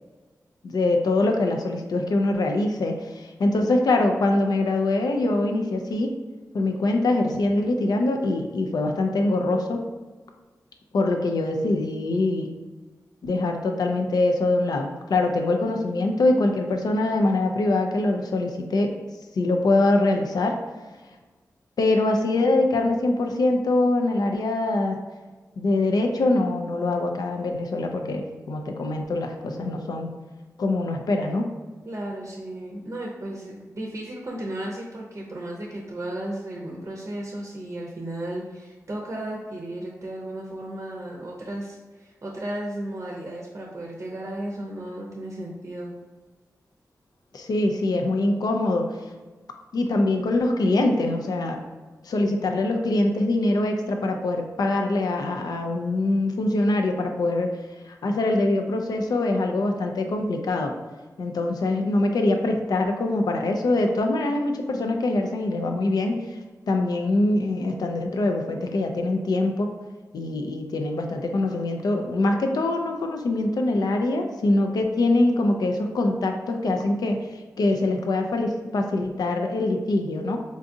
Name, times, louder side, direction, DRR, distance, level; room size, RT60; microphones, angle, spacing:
voice 1, 0.6-6.1 6.5-9.8 10.9-12.5 13.2-18.9 19.3-20.6 21.8-25.0 25.6-30.1 30.6-31.5 47.3-48.9 49.7-51.6 52.0-57.5 57.9-60.7 61.2-66.4 66.7-69.7 70.1-80.4, left 2 dB, 75° left, 3 dB, 0.4 m, -23 dB
voice 2, 31.9-46.0, right 1 dB, 45° right, -2 dB, 0.6 m, -34 dB
3.8 x 2.4 x 2.6 m, 1.3 s
cardioid pair, 45°, 7 cm